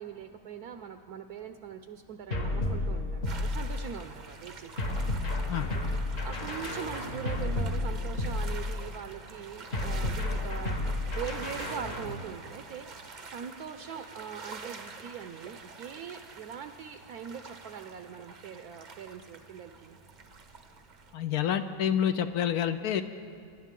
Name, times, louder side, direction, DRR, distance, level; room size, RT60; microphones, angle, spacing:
voice 1, 0.0-5.1 6.2-10.8 11.0-20.0, right 8 dB, 70° right, 7 dB, 1.0 m, -42 dB
sound 1, 2.3-4.0 4.8-9.0 9.7-12.2, left 2 dB, 50° left, 1.9 m, -32 dB
sound 2, 3.3-21.1, right 4 dB, 45° right, 0.6 m, -47 dB
voice 2, 21.1-23.0, left 9 dB, 70° left, 10 dB, 1.0 m, -28 dB
24.5 x 11.5 x 3.7 m, 2.5 s
omnidirectional pair, 1.8 m